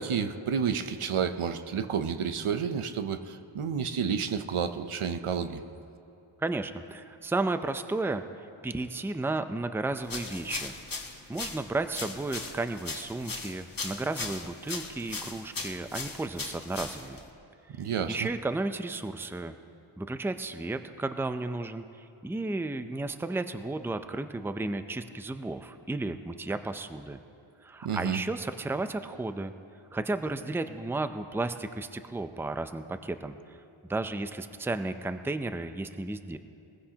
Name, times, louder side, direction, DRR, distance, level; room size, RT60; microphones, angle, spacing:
voice 1, 0.0-5.6 17.8-18.3 27.8-28.2, right 7 dB, 80° right, 9 dB, 0.8 m, -30 dB
voice 2, 6.4-10.8 11.3-17.2 17.8-19.5 20.0-27.2 27.6-29.5 29.9-33.6 33.9-36.4, right 2 dB, 5° right, 9 dB, 0.5 m, -33 dB
sound 1, 10.0-17.3, left 3 dB, 40° left, 1.4 m, -38 dB
21.0 x 15.5 x 2.9 m, 2.7 s
wide cardioid pair, 65°, 50 cm